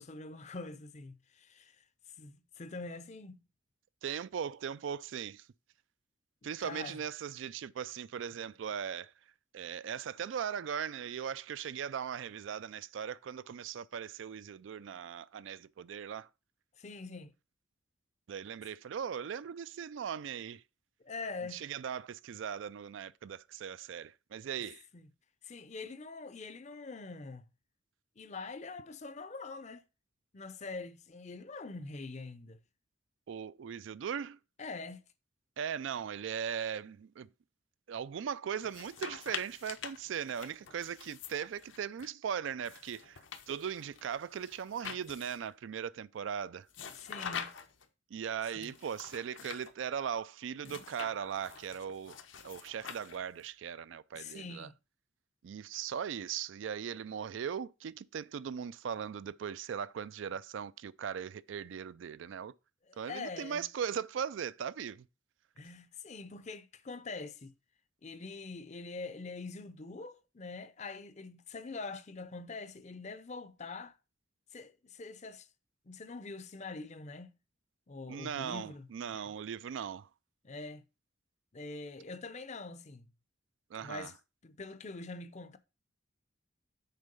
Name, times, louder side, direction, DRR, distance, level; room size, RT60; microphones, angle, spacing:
voice 1, 0.0-1.8 2.2-3.4 6.4-7.0 16.8-17.3 21.0-21.6 24.9-25.1 25.4-27.5 28.2-29.8 30.3-32.6 34.6-35.0 47.0-47.6 48.6-48.7 54.1-54.7 62.9-63.7 65.6-67.5 68.0-73.9 74.5-75.5 75.9-77.3 77.9-78.9 79.1-79.3 80.4-80.8 81.5-83.1 83.8-84.1 84.4-85.6, left 3 dB, 35° left, 0.6 m, -44 dB
voice 2, 4.0-5.5 6.4-9.1 9.5-16.3 18.3-20.6 21.5-24.8 33.3-34.4 35.6-37.3 37.9-46.7 48.1-52.2 52.4-54.7 55.4-62.5 63.0-65.1 78.1-80.1 83.7-84.1, right 8 dB, 75° right, 0.3 m, -39 dB
sound 1, 38.6-42.1 42.6-45.5 46.7-47.9 48.6-49.7 50.6-53.4, left 7 dB, 75° left, 0.8 m, -45 dB
6.6 x 4.5 x 5.2 m
head